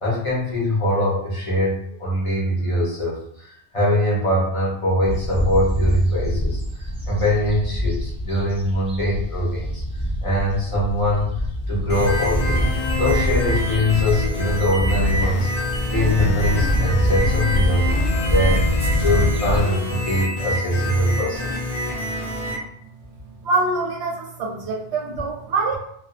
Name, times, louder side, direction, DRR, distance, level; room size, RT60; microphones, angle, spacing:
voice 1, 0.0-6.6 7.1-9.8 10.2-11.3 11.7-12.6 13.0-15.5 15.9-18.6 19.0-21.5, left 1 dB, 35° left, -6 dB, 0.7 m, -22 dB
sound 1, 5.0-19.6, equal, 5° right, 0.5 m, -24 dB
sound 2, 11.9-22.6, left 1 dB, 80° left, 0.9 m, -27 dB
voice 2, 23.2-25.8, right 3 dB, 70° right, 0 dB, 0.8 m, -25 dB
2.3 x 2.3 x 2.5 m, 0.69 s
omnidirectional pair, 1.2 m